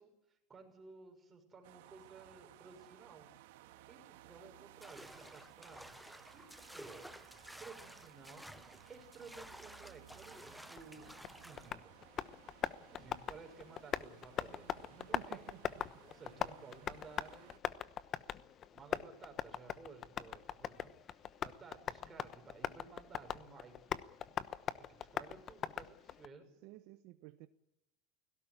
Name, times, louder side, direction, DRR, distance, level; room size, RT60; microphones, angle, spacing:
voice 1, 0.0-3.3 3.7-5.9 6.3-11.1 11.4-11.9 12.6-15.5 16.1-17.6 18.3-24.0 24.8-26.5, right 4 dB, 20° right, 6.5 m, -56 dB
sound 1, 1.6-17.6, right 14 dB, 75° right, 1.7 m, -60 dB
sound 2, 4.8-11.7, equal, ahead, 0.7 m, -53 dB
Tap, 10.8-26.3, left 9 dB, 35° left, 1.0 m, -42 dB
voice 2, 15.1-16.0 26.6-27.5, right 18 dB, 60° right, 1.0 m, -53 dB
17.5 x 17.5 x 9.9 m
supercardioid pair, 130°, 0 cm